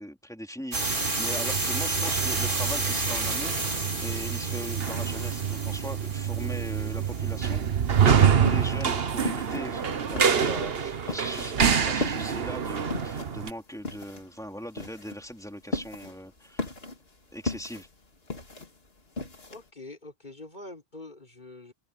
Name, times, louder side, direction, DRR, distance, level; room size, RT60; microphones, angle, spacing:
voice 1, 0.0-3.5 4.0-7.6 8.1-16.7 17.3-17.9, equal, 5° left, 3.2 m, -40 dB
sound 1, 0.7-7.6, right 2 dB, 50° right, 2.7 m, -31 dB
sound 2, 0.7-13.5, right 7 dB, 70° right, 1.3 m, -27 dB
sound 3, 8.2-19.7, left 2 dB, 65° left, 2.7 m, -37 dB
voice 2, 19.5-21.7, left 2 dB, 45° left, 4.5 m, -44 dB
open air
omnidirectional pair, 1.1 m